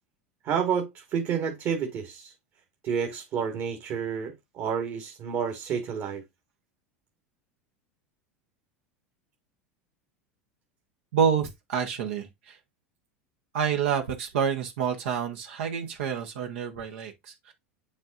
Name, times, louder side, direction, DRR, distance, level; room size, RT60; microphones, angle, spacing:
voice 1, 0.4-2.3 2.8-6.2, right 7 dB, 45° right, 1.7 m, -30 dB
voice 2, 11.1-12.6 13.5-17.5, right 7 dB, 65° right, 1.2 m, -28 dB
10.0 x 3.8 x 2.5 m
hypercardioid pair, 85°, 7 cm